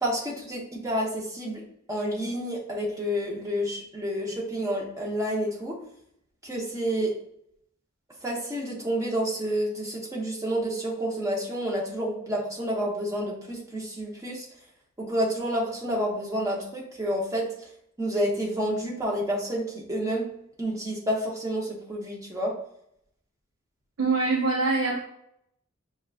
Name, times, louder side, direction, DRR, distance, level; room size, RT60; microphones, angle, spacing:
voice 1, 0.0-5.8 6.4-7.1 8.2-14.5 15.0-17.7 18.0-20.3 20.6-22.5, equal, 15° right, -4 dB, 0.9 m, -29 dB
voice 2, 24.0-25.0, right 3 dB, 75° right, -3 dB, 0.7 m, -24 dB
5.9 x 2.3 x 2.4 m, 0.72 s
head